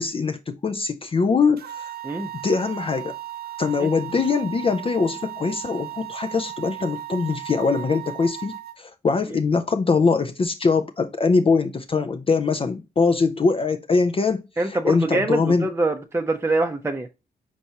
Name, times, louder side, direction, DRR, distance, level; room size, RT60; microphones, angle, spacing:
voice 1, 0.0-1.9 2.4-3.2 3.6-15.7, left 4 dB, 35° left, 0.5 m, -22 dB
sound 1, 1.6-8.8, right 14 dB, 70° right, 0.4 m, -36 dB
voice 2, 14.6-17.1, right 2 dB, 15° right, 0.6 m, -24 dB
4.5 x 4.3 x 2.7 m
supercardioid pair, 50°, 17 cm